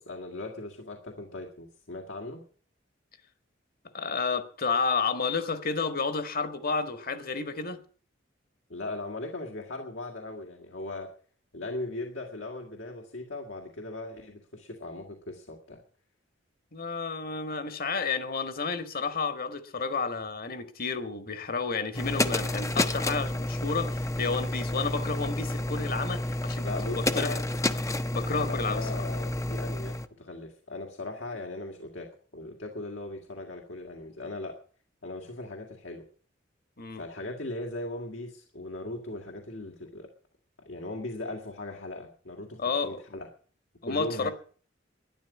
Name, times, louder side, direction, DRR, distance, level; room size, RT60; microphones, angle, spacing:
voice 1, 0.0-2.4 8.7-11.1 11.5-15.8 26.6-27.4 28.4-34.6 35.0-36.1 36.9-40.1 40.6-43.3 43.8-44.3, left 2 dB, 75° left, 2.1 m, -38 dB
voice 2, 3.9-7.8 16.7-26.7 26.9-27.4 28.1-28.9 36.8-37.0 42.6-43.0 43.8-44.3, left 4 dB, 50° left, 1.7 m, -31 dB
sound 1, 21.9-30.1, left 1 dB, 15° left, 0.7 m, -30 dB
12.5 x 10.5 x 8.3 m
head